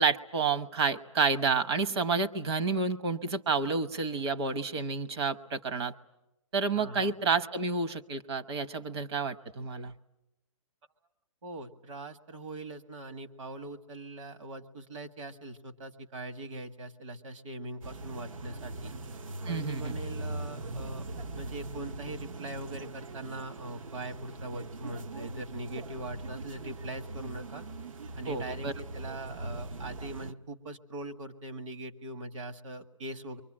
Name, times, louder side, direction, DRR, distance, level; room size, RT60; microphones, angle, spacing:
voice 1, 0.0-5.9 6.5-9.9 19.5-19.9 28.3-28.7, right 4 dB, 50° right, 10 dB, 1.0 m, -29 dB
voice 2, 6.7-7.1 11.4-18.9 19.5-21.0 21.3-27.6 28.2-33.4, right 2 dB, 65° right, 8 dB, 1.8 m, -41 dB
sound 1, 17.8-30.3, right 2 dB, 85° right, 1.0 m, -41 dB
28.5 x 23.5 x 8.8 m, 0.94 s
hypercardioid pair, 165°, 17 cm